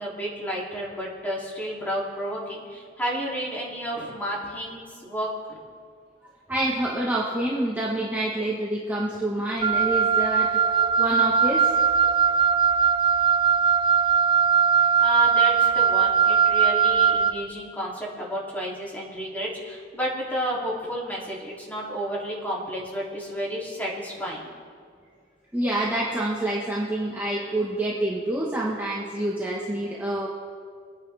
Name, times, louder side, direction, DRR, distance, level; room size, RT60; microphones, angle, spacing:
voice 1, 0.0-5.6 14.8-24.5, equal, 10° left, -5 dB, 2.9 m, -31 dB
voice 2, 6.5-10.6 11.0-11.7 25.5-30.3, right 1 dB, 10° right, -5 dB, 1.3 m, -27 dB
Wind instrument woodwind instrument, 9.6-17.4, right 7 dB, 25° right, 0.3 m, -20 dB
24.5 x 9.8 x 3.5 m, 2.1 s
head